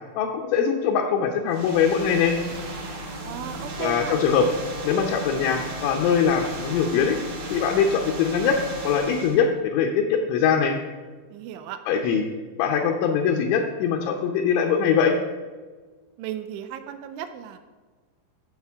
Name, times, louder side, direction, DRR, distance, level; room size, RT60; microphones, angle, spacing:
voice 1, 0.2-2.4 3.8-4.5 4.8-7.2 7.5-8.6 8.8-10.7 11.9-12.2 12.6-15.2, left 7 dB, 80° left, 0 dB, 3.2 m, -22 dB
sound 1, 1.5-9.4, right 1 dB, 65° right, 1.6 m, -35 dB
voice 2, 3.2-4.2 11.3-11.8 16.2-17.6, right 10 dB, 85° right, 9 dB, 3.1 m, -35 dB
12.5 x 8.1 x 3.5 m, 1.4 s
omnidirectional pair, 5.5 m